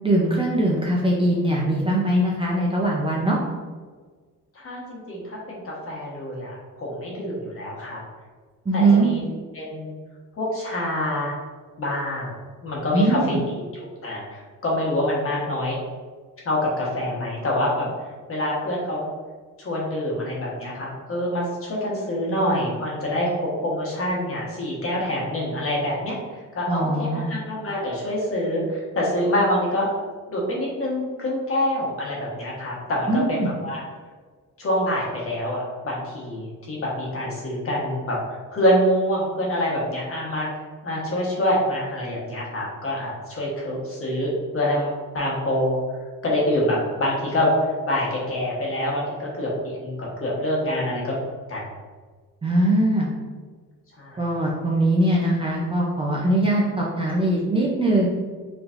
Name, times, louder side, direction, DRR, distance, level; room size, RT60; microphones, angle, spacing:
voice 1, 0.0-3.4 8.7-9.1 12.9-13.4 26.7-27.3 33.1-33.5 52.4-53.1 54.2-58.1, right 1 dB, 15° right, -4 dB, 0.4 m, -21 dB
voice 2, 4.5-8.0 8.7-9.2 9.5-10.0 10.4-11.3 11.8-12.3 12.6-13.4 13.7-15.8 16.4-19.1 19.6-26.1 26.5-29.9 30.3-33.8 34.6-40.5 40.8-45.8 46.2-51.2 51.5-51.6 54.0-54.5, left 1 dB, 40° left, -4 dB, 1.2 m, -26 dB
5.0 x 3.1 x 2.5 m, 1.5 s
cardioid pair, 160°, 35 cm